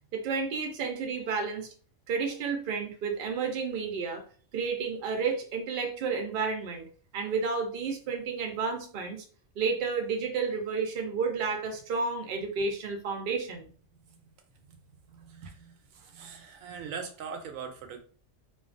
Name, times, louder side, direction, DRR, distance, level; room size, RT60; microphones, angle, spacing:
voice 1, 0.1-1.7 2.1-4.2 4.5-6.9 7.1-9.2 9.6-13.7, right 5 dB, 55° right, 3 dB, 0.6 m, -31 dB
voice 2, 15.1-18.0, right 6 dB, 85° right, 5 dB, 1.0 m, -41 dB
2.6 x 2.3 x 2.5 m, 0.43 s
omnidirectional pair, 1.3 m